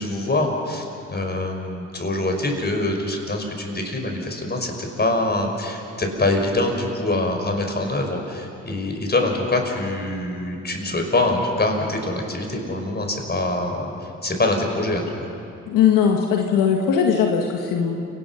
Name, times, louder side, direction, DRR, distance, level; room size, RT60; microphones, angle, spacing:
voice 1, 0.0-15.3, left 2 dB, 30° left, 2 dB, 5.6 m, -24 dB
voice 2, 15.7-18.0, left 7 dB, 80° left, 2 dB, 1.6 m, -19 dB
29.0 x 19.0 x 5.8 m, 2.8 s
hypercardioid pair, 45°, 32 cm